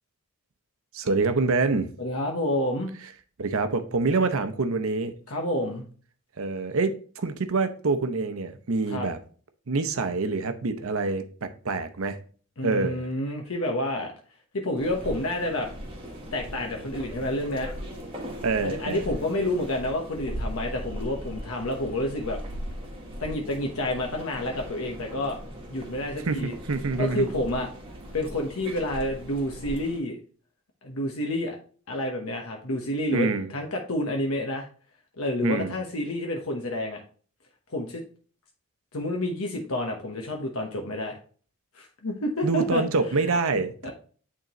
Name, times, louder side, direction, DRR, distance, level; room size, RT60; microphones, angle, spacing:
voice 1, 0.9-1.9 3.4-5.1 6.4-9.2 9.7-12.2 12.6-13.0 18.4-19.0 26.3-26.4 26.7-27.3 33.1-33.5 35.4-35.7 42.4-43.9, right 3 dB, 65° right, 0.7 m, -26 dB
voice 2, 2.0-2.9 5.3-5.8 8.9-9.1 12.6-14.1 14.5-15.7 16.3-17.7 18.6-22.4 23.2-25.4 25.7-26.5 27.0-27.7 28.1-30.2 30.8-31.6 31.9-34.7 35.2-37.0 37.7-38.0 38.9-41.2 41.7-42.8 43.3-43.6 43.8-43.9, left 1 dB, 75° left, 1.1 m, -29 dB
sound 1, 14.8-30.0, equal, 25° right, 1.3 m, -39 dB
9.0 x 3.7 x 3.0 m
head